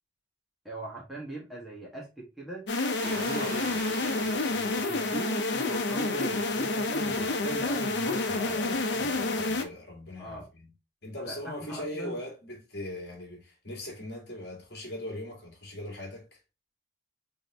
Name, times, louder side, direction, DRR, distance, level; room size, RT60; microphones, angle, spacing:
voice 1, 0.6-2.7 3.0-3.9 4.2-9.1 10.2-10.5 11.2-12.2, right 2 dB, ahead, 1.7 m, -41 dB
sound 1, 2.7-9.6, left 2 dB, 80° left, 0.7 m, -29 dB
sound 2, 3.0-6.3, right 1 dB, 55° right, 2.0 m, -43 dB
voice 2, 7.0-7.8 8.3-10.7 11.0-16.4, left 1 dB, 65° left, 1.9 m, -40 dB
3.9 x 3.7 x 3.0 m
head